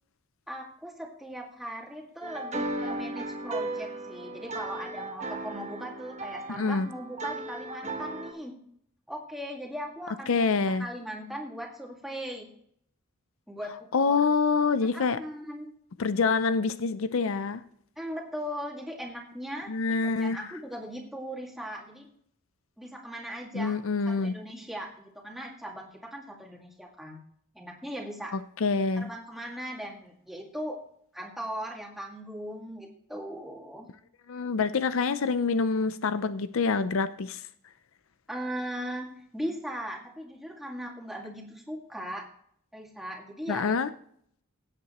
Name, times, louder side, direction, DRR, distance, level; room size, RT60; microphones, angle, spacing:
voice 1, 0.5-8.5 9.1-12.5 13.5-14.3 14.9-15.7 18.0-22.1 22.8-23.8 24.1-27.2 27.5-28.3 29.0-30.8 31.1-33.9 38.3-42.2 42.7-43.7, equal, ahead, 2.0 m, -39 dB
sound 1, 2.2-8.3, right 2 dB, 30° right, 1.3 m, -36 dB
voice 2, 6.6-6.9 10.3-10.9 13.9-15.2 16.0-17.6 19.7-20.4 23.5-24.4 28.3-29.1 34.3-37.4 43.5-43.9, left 4 dB, 75° left, 0.5 m, -26 dB
16.5 x 8.4 x 3.0 m
head